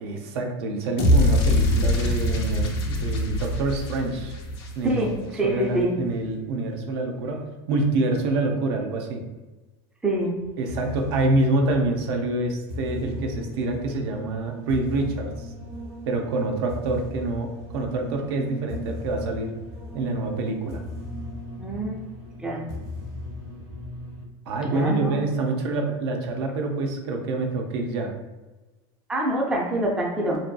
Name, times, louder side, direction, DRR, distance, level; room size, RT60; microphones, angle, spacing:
voice 1, 0.0-4.3 4.7-5.0 5.4-9.2 10.6-15.5 16.1-19.5 19.9-20.8 24.5-28.1, right 2 dB, 75° right, 3 dB, 0.5 m, -26 dB
sound 1, 1.0-5.2, left 1 dB, 80° left, 0.6 m, -23 dB
voice 2, 4.8-6.0 10.0-10.4 21.6-22.0 22.4-22.7 24.6-25.2 29.1-30.4, right 1 dB, 5° right, -2 dB, 0.3 m, -25 dB
sound 2, 10.4-24.2, left 1 dB, 50° right, 1.0 m, -37 dB
2.6 x 2.5 x 2.2 m, 1.1 s
supercardioid pair, 140°, 14 cm